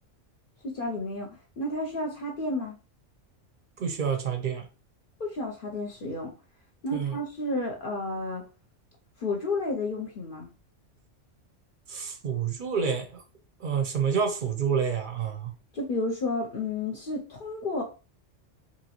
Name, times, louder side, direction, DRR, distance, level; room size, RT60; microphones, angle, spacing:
voice 1, 0.6-1.3 1.6-2.8 5.2-6.3 6.8-8.4 9.2-10.5 15.7-17.8, left 2 dB, 55° left, 0.7 m, -31 dB
voice 2, 3.8-4.7 6.9-7.2 11.9-13.2 13.6-15.5, right 6 dB, 55° right, 0.6 m, -28 dB
2.9 x 2.7 x 2.8 m
omnidirectional pair, 1.2 m